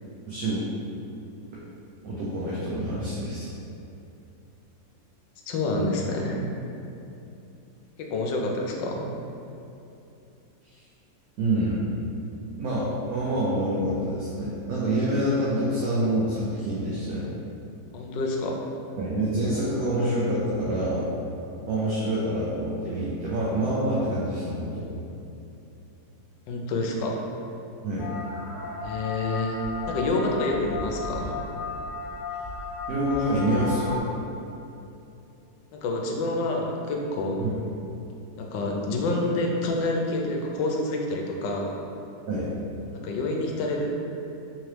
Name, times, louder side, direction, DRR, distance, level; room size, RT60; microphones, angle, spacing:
voice 1, 0.3-0.6 1.5-1.6 2.0-3.5 10.6-10.7 11.4-11.9 12.6-17.3 19.0-21.1 21.7-24.9 27.8-28.1 32.9-34.0 37.4-37.5 42.3-42.5, right 1 dB, 65° right, -7 dB, 0.9 m, -26 dB
voice 2, 5.5-6.4 8.0-9.1 17.9-18.6 26.5-27.2 28.8-29.6 29.9-31.3 35.7-37.4 38.4-41.8 42.9-44.0, left 2 dB, 80° left, 0 dB, 1.2 m, -28 dB
sound 1, 28.0-34.0, left 3 dB, 50° left, 0.7 m, -34 dB
3.6 x 2.9 x 3.2 m, 2.8 s
omnidirectional pair, 2.0 m